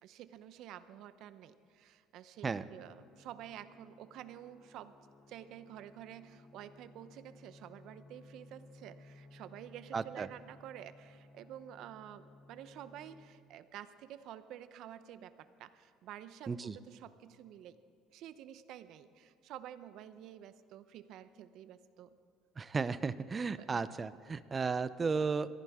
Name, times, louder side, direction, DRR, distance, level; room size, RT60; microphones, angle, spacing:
voice 1, 0.0-4.9 5.3-17.8 18.1-22.2 23.6-23.8, right 11 dB, 60° right, 13 dB, 0.7 m, -50 dB
sound 1, 2.9-13.3, left 2 dB, 55° left, 2.5 m, -59 dB
voice 2, 9.9-10.3 16.5-16.8 22.6-25.5, right 5 dB, 20° right, 15 dB, 0.5 m, -34 dB
22.0 x 15.0 x 3.6 m, 2.3 s
cardioid pair, 140°, 0 cm